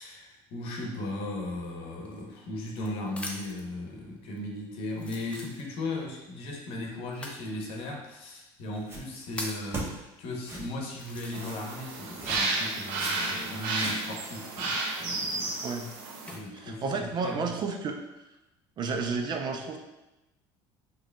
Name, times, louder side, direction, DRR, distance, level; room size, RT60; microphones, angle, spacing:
voice 1, 0.0-15.6 16.3-17.5, left 1 dB, 60° left, 1 dB, 0.9 m, -37 dB
sound 1, 2.1-3.7 4.4-4.5 4.9-6.0 7.1-7.4 8.3-8.4 8.9-9.7 10.4-10.5 10.9-11.8 12.1-13.6 14.8-16.4 17.0-17.5, left 1 dB, 10° left, 0.6 m, -43 dB
sound 2, 8.8-9.2 9.7-9.9 10.4-10.7 11.3-11.7 12.2-12.6 12.9-13.1 13.5-14.2, right 1 dB, 20° right, 1.0 m, -39 dB
sound 3, 11.3-16.4, right 3 dB, 85° right, 0.6 m, -32 dB
voice 2, 16.5-18.0 18.8-19.8, right 4 dB, 40° right, 4 dB, 0.5 m, -31 dB
4.7 x 3.0 x 2.3 m, 0.98 s
supercardioid pair, 105°, 11 cm